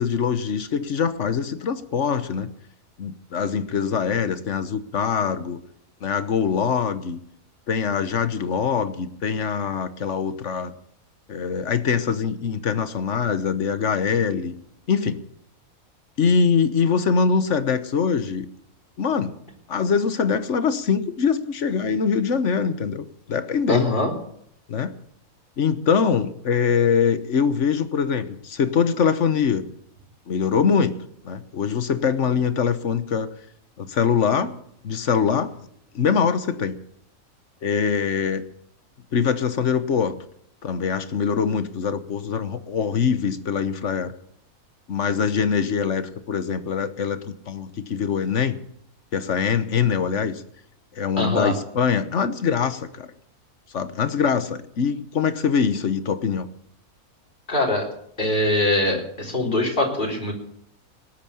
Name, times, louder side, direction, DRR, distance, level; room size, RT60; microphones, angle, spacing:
voice 1, 0.0-2.5 3.0-5.6 6.0-7.2 7.7-10.8 11.3-14.5 14.9-15.2 16.2-18.5 19.0-19.3 19.7-24.0 24.7-24.9 25.6-29.6 30.3-31.0 31.2-33.3 33.8-34.5 34.8-35.5 35.9-36.8 37.6-38.4 39.1-40.1 40.6-44.1 44.9-48.6 49.1-50.4 50.9-53.1 53.7-56.5, left 6 dB, 55° left, 12 dB, 1.3 m, -23 dB
voice 2, 23.7-24.1 51.2-51.5 57.5-57.9 58.2-60.3, left 1 dB, 30° left, -1 dB, 4.1 m, -22 dB
19.0 x 8.5 x 7.0 m, 0.71 s
omnidirectional pair, 1.6 m